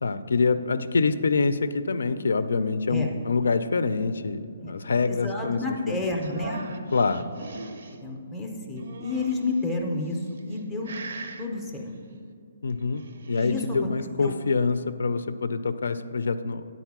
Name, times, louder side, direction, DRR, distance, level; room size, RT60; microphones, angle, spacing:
voice 1, 0.0-5.6 5.9-6.0 6.9-7.3 12.6-13.0 13.3-16.7, left 4 dB, 85° left, 12 dB, 0.4 m, -25 dB
voice 2, 5.1-6.6 8.0-10.2 10.5-10.9 11.4-11.9 13.4-13.9 14.2-14.3, left 3 dB, ahead, 0 dB, 0.5 m, -30 dB
sound 1, 6.2-8.0 8.8-9.6 10.3-10.6 10.8-11.5 12.8-13.5, right 4 dB, 50° right, 0.5 m, -40 dB
8.9 x 4.1 x 6.0 m, 2.5 s
hypercardioid pair, 180°, 0 cm